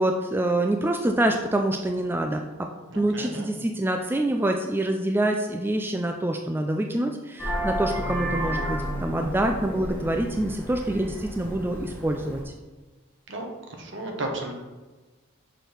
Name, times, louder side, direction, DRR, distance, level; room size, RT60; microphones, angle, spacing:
voice 1, 0.0-2.7 3.0-12.5, right 1 dB, 10° right, 4 dB, 0.3 m, -26 dB
voice 2, 2.9-3.5 13.3-13.5 13.8-14.5, right 1 dB, 60° right, 2 dB, 1.2 m, -33 dB
Vehicle horn car horn honking, 7.4-12.4, equal, 10° left, 1.2 m, -31 dB
6.3 x 4.4 x 5.1 m, 1.2 s
head